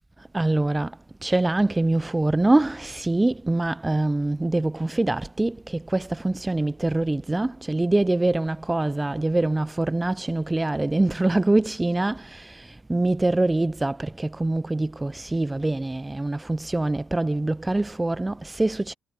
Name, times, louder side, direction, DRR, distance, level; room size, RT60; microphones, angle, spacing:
voice 1, 0.2-18.9, right 2 dB, 15° right, 0.4 m, -24 dB
supercardioid pair, 60°, 0 cm